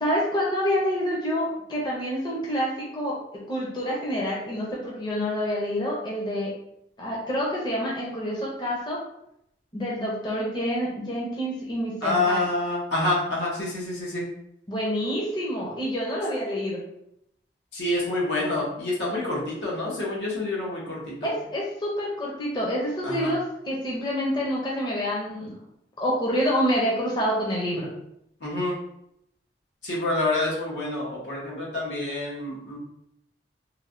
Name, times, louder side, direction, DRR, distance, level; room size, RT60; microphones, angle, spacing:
voice 1, 0.0-3.2 3.5-6.5 7.0-9.0 9.7-12.4 14.7-16.8 21.2-25.6 26.0-27.9, equal, 25° left, -5 dB, 0.6 m, -27 dB
voice 2, 12.0-14.3 17.7-21.3 23.0-23.3 28.4-28.8 29.8-32.8, left 2 dB, 85° left, -4 dB, 0.9 m, -27 dB
3.2 x 2.1 x 2.5 m, 0.76 s
head